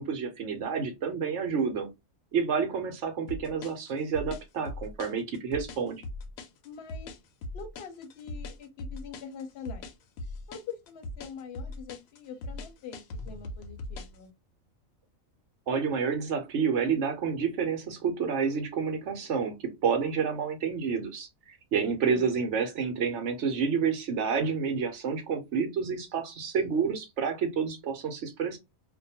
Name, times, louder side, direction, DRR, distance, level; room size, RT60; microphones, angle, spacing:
voice 1, 0.0-1.9 2.3-6.0 15.7-28.6, right 6 dB, 65° right, 0.9 m, -29 dB
sound 1, 3.3-14.2, left 2 dB, 85° left, 1.0 m, -39 dB
voice 2, 6.6-7.2 7.5-9.9 10.5-14.3 21.8-22.4, left 6 dB, 55° left, 0.9 m, -44 dB
2.5 x 2.2 x 2.7 m
omnidirectional pair, 1.4 m